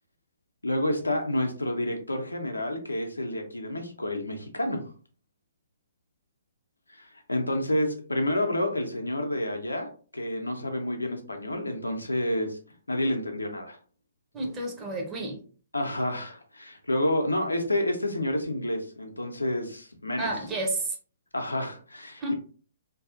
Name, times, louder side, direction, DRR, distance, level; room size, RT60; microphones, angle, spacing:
voice 1, 0.6-4.8 6.9-9.9 10.1-12.6 12.9-13.8 15.7-20.3 21.3-22.3, left 1 dB, 80° left, 4 dB, 0.5 m, -29 dB
voice 2, 14.3-15.4 20.2-21.0 22.2-22.3, right 2 dB, 20° right, 0 dB, 0.6 m, -30 dB
2.6 x 2.4 x 2.4 m, 0.41 s
figure-of-eight pair, 125°, 0 cm